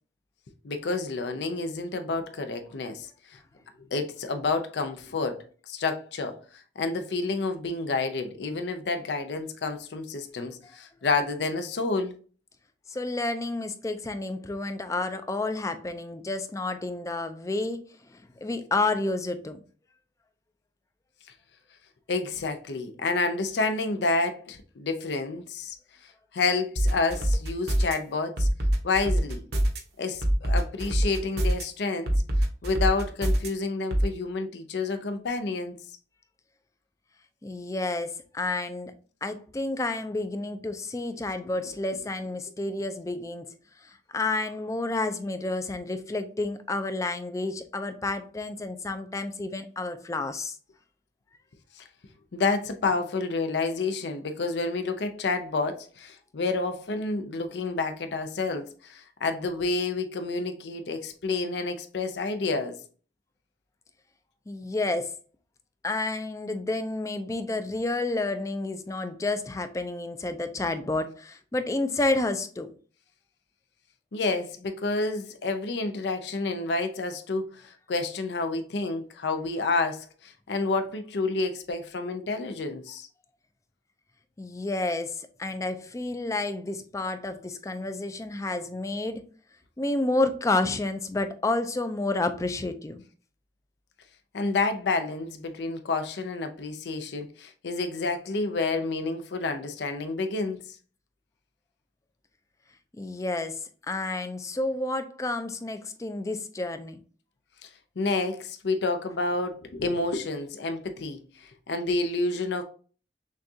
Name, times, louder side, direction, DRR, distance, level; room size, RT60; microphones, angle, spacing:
voice 1, 0.6-3.1 3.9-6.4 6.8-12.1 22.1-25.8 26.3-28.5 28.8-29.4 30.0-32.1 32.6-35.8 51.8-51.9 52.3-62.8 74.1-83.1 94.3-100.7 107.6-107.7 108.0-111.2 111.7-112.6, left 3 dB, 75° left, 0.5 m, -29 dB
voice 2, 12.9-17.8 18.1-19.6 37.4-38.9 39.2-43.5 44.1-50.6 64.5-65.1 65.8-72.7 84.4-89.2 89.8-93.0 103.0-103.6 103.9-107.0, left 2 dB, 20° left, 0.4 m, -30 dB
sound 1, 26.8-27.9 28.4-29.8 30.2-31.6 32.1-33.5 33.9-34.1, right 1 dB, 65° right, 1.0 m, -24 dB
6.3 x 2.4 x 2.7 m
head